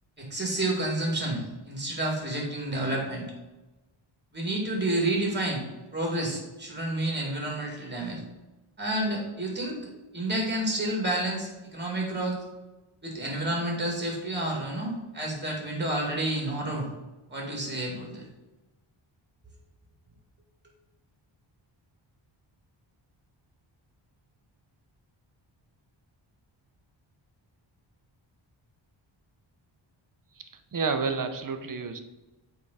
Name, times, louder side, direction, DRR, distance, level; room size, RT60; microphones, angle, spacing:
voice 1, 0.2-3.3 4.3-5.6 5.9-8.2 8.8-9.8 10.1-12.4 13.0-16.8 17.3-18.3, right 1 dB, 20° right, 0 dB, 2.3 m, -30 dB
voice 2, 30.7-32.0, right 4 dB, 40° right, 8 dB, 0.8 m, -29 dB
8.2 x 3.6 x 4.2 m, 1.1 s
wide cardioid pair, 105°, 49 cm